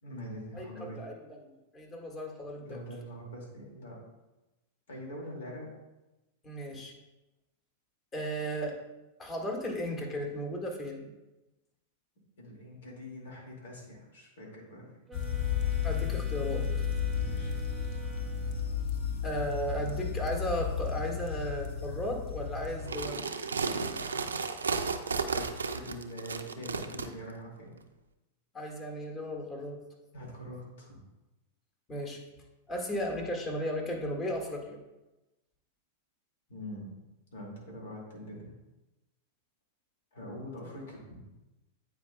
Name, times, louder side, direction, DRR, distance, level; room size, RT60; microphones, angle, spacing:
voice 1, 0.0-1.0 2.6-4.0 4.9-5.7 12.4-14.9 17.1-17.6 25.1-27.8 30.1-31.0 36.5-37.0 37.3-38.5 40.1-41.2, equal, 75° left, -2 dB, 2.1 m, -44 dB
voice 2, 0.9-2.8 6.4-6.9 8.1-8.8 9.2-11.1 15.8-16.7 19.2-23.2 28.5-29.8 31.9-32.2 32.7-34.8, equal, 25° left, -1 dB, 1.7 m, -35 dB
sound 1, 15.1-23.1, left 7 dB, 55° left, 0.8 m, -33 dB
sound 2, 15.1-19.0, right 3 dB, 15° right, 0.8 m, -48 dB
sound 3, 22.8-27.1, right 5 dB, 90° right, 0.4 m, -33 dB
8.8 x 4.7 x 2.2 m, 1.0 s
hypercardioid pair, 100°, 0 cm